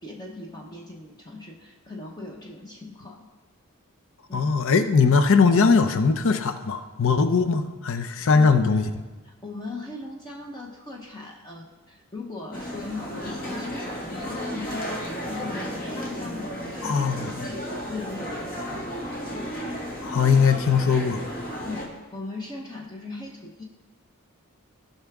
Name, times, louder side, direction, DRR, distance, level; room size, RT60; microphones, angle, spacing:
voice 1, 0.0-3.3 4.3-4.5 8.3-8.9 9.2-14.8 15.2-19.3 21.6-23.6, left 2 dB, 20° left, 0 dB, 0.8 m, -39 dB
voice 2, 4.3-8.8 16.8-17.3 20.0-21.2, left 5 dB, 60° left, 8 dB, 0.6 m, -20 dB
sound 1, 12.5-21.9, equal, 40° left, 1.7 m, -33 dB
16.5 x 5.7 x 3.5 m, 1.3 s
head